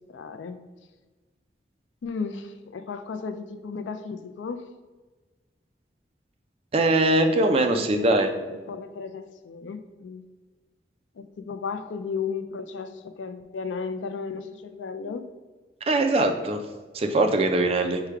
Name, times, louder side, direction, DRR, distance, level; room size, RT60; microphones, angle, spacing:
voice 1, 0.1-0.6 2.0-4.7 7.7-10.2 11.1-15.3, left 5 dB, 90° left, 10 dB, 0.4 m, -35 dB
voice 2, 6.7-8.3 15.9-16.6 16.9-18.0, right 2 dB, 30° right, 5 dB, 0.4 m, -21 dB
4.8 x 2.2 x 4.6 m, 1.3 s
head